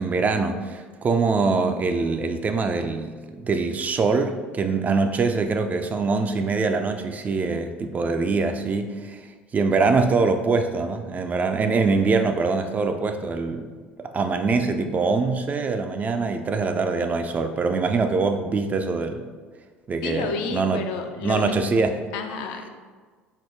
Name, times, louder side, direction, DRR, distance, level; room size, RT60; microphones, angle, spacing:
voice 1, 0.0-9.2 9.5-13.7 14.1-19.3 19.9-20.8 21.2-22.0, right 4 dB, 25° right, 7 dB, 0.3 m, -23 dB
voice 2, 20.0-21.6 22.1-22.7, left 5 dB, 60° left, 4 dB, 0.4 m, -30 dB
4.4 x 2.1 x 3.5 m, 1.5 s
figure-of-eight pair, 65°, 6 cm